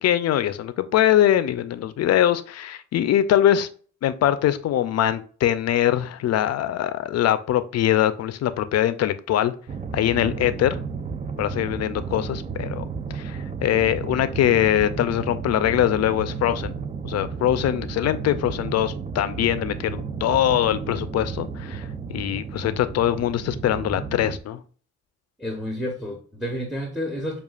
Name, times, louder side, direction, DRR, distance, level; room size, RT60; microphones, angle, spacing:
voice 1, 0.0-3.7 4.0-9.5 9.9-10.8 11.4-12.8 13.1-16.7 17.0-24.6, left 11 dB, 55° left, 13 dB, 0.5 m, -22 dB
sound 1, 9.7-24.4, right 5 dB, 25° right, 0.4 m, -33 dB
voice 2, 25.4-27.4, equal, ahead, 0 dB, 0.9 m, -30 dB
7.1 x 2.4 x 2.4 m, 0.42 s
cardioid pair, 90°, 30 cm